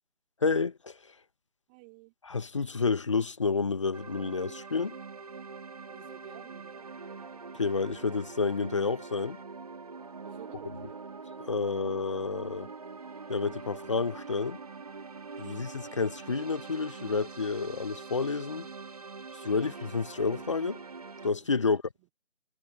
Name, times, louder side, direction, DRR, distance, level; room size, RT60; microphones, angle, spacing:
voice 1, 0.4-1.0 2.2-5.0 7.5-9.4 11.4-12.7 13.3-14.6 15.4-18.7 19.4-20.8 21.2-21.8, left 4 dB, 25° left, 1.5 m, -30 dB
voice 2, 1.7-2.1 5.9-6.9 10.2-11.0 15.3-15.7 21.4-22.1, right 33 dB, 10° right, 3.2 m, -52 dB
sound 1, 3.9-21.3, right 4 dB, 30° right, 2.2 m, -44 dB
figure-of-eight pair, 160°, 36 cm